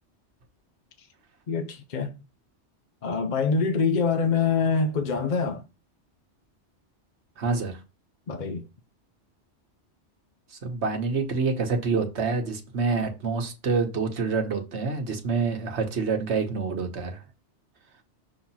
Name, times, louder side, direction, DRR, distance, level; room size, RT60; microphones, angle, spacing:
voice 1, 1.5-2.1 3.0-5.6 8.3-8.6, left 5 dB, 50° left, 0.7 m, -25 dB
voice 2, 7.4-7.8 10.5-17.2, right 4 dB, 70° right, 1.4 m, -27 dB
6.4 x 2.9 x 5.5 m
omnidirectional pair, 1.2 m